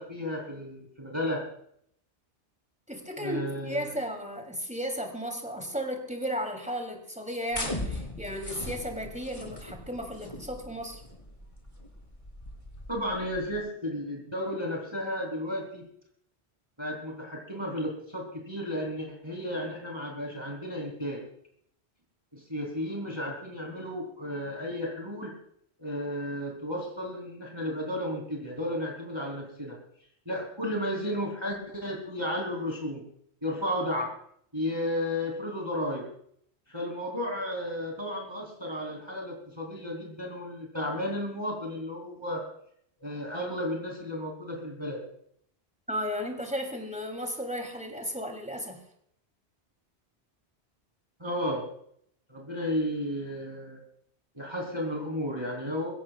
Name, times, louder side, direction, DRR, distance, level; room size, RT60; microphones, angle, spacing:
voice 1, 0.0-1.4 3.2-4.0 12.9-15.9 16.8-21.2 22.3-25.4 25.8-29.8 30.3-33.0 33.4-34.1 34.5-36.1 36.7-42.5 43.0-45.0 51.2-51.7 52.3-53.8 54.3-55.9, left 1 dB, 25° right, -1 dB, 3.6 m, -33 dB
voice 2, 2.9-11.0 45.9-48.8, equal, 5° right, 3 dB, 3.1 m, -34 dB
sound 1, 7.5-13.6, left 1 dB, 30° left, 3.2 m, -39 dB
22.5 x 16.5 x 2.4 m, 0.67 s
omnidirectional pair, 1.1 m